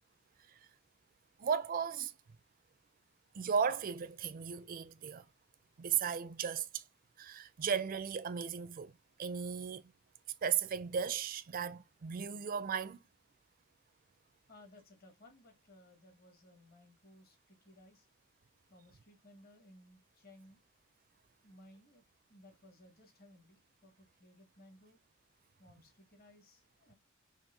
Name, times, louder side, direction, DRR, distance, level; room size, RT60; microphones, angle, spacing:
voice 1, 1.4-2.1 3.3-5.2 5.8-6.8 7.2-8.9 9.2-9.8 10.4-13.0, right 7 dB, 40° right, 0.4 m, -35 dB
voice 2, 14.5-18.1 18.7-20.6 21.4-22.0 22.3-25.0 25.6-26.9, left 1 dB, 45° left, 1.4 m, -60 dB
4.4 x 2.5 x 3.7 m
head